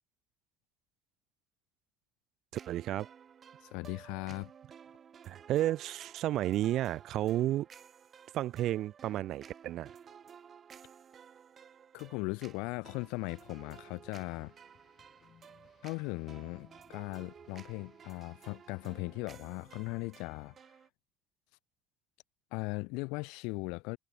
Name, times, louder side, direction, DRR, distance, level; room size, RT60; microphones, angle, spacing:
sound 1, 2.5-20.9, right 7 dB, 30° right, 0.9 m, -55 dB
voice 1, 2.5-3.1 5.3-7.7 8.3-9.9, right 13 dB, 55° right, 0.4 m, -32 dB
voice 2, 3.6-4.5 11.9-14.5 15.8-20.5 22.5-24.0, left 28 dB, 90° left, 0.7 m, -38 dB
sound 2, 13.0-19.0, left 8 dB, 35° left, 7.2 m, -67 dB
cardioid pair, 150°, 0 cm